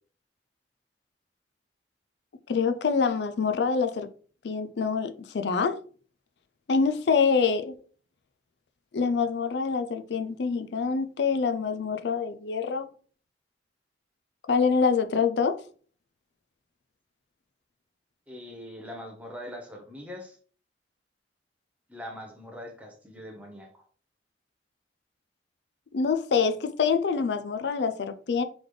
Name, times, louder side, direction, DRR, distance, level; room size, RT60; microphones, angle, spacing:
voice 1, 2.5-4.1 4.4-5.8 6.7-7.7 8.9-12.9 14.5-15.6 25.9-28.4, left 5 dB, 70° left, 0.4 m, -25 dB
voice 2, 18.3-20.4 21.9-23.8, equal, 10° right, 0.9 m, -42 dB
3.9 x 3.4 x 3.2 m
head